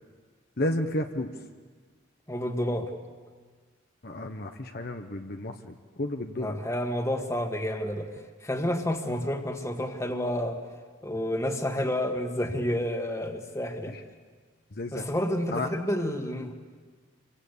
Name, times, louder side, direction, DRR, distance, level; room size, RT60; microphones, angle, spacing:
voice 1, 0.6-1.3 4.0-6.6 13.9-14.0 14.8-15.0 15.5-15.7, left 1 dB, 50° left, 5 dB, 1.0 m, -32 dB
voice 2, 2.3-2.9 6.4-8.1 8.4-10.6 11.0-13.9 14.9-16.5, left 1 dB, 15° left, 4 dB, 1.9 m, -29 dB
29.0 x 23.5 x 8.4 m, 1.5 s
head